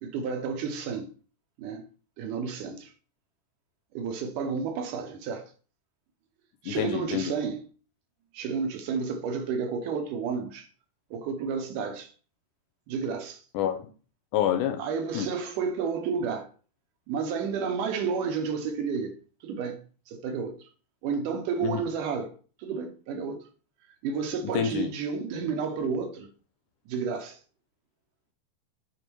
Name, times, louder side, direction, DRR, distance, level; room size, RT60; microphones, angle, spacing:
voice 1, 0.0-1.1 1.6-1.8 2.2-2.9 3.9-5.5 6.6-7.7 8.3-10.7 11.1-12.1 12.9-13.4 14.8-16.5 17.1-19.8 20.1-20.7 21.0-23.5 24.0-26.3 26.9-27.4, right 5 dB, 75° right, 2.2 m, -31 dB
voice 2, 6.7-7.3 13.5-13.9 14.3-14.8 15.1-15.3 21.6-21.8 24.5-24.9, left 9 dB, 75° left, 2.0 m, -27 dB
8.8 x 4.5 x 4.6 m
omnidirectional pair, 4.1 m